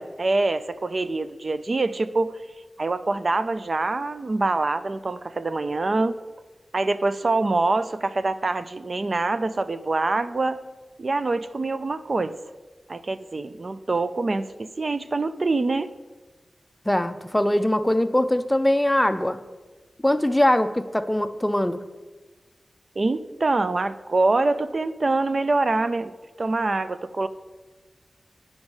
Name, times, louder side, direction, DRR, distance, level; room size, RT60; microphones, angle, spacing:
voice 1, 0.0-2.4 2.8-6.2 6.7-10.6 11.0-12.4 12.9-15.9 23.0-26.1 26.4-27.3, right 3 dB, 50° right, 11 dB, 0.4 m, -25 dB
voice 2, 16.9-19.4 20.0-21.8, left 1 dB, 10° left, 11 dB, 0.5 m, -22 dB
9.7 x 5.2 x 4.8 m, 1.3 s
cardioid pair, 60°, 0 cm